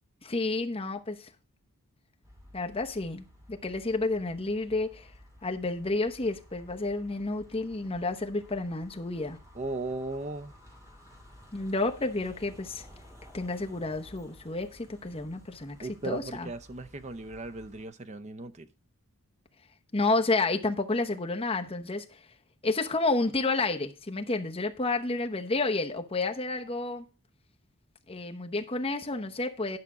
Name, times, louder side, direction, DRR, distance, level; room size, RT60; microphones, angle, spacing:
voice 1, 0.2-1.3 2.5-5.1 5.4-9.4 11.5-12.8 13.3-16.5 19.9-22.0 22.6-27.0 28.1-29.8, left 3 dB, 25° left, 0.9 m, -30 dB
sound 1, 2.2-17.8, left 1 dB, 15° right, 2.6 m, -54 dB
voice 2, 9.5-10.5 15.8-18.7, right 3 dB, 30° right, 0.6 m, -37 dB
10.5 x 5.9 x 4.9 m
head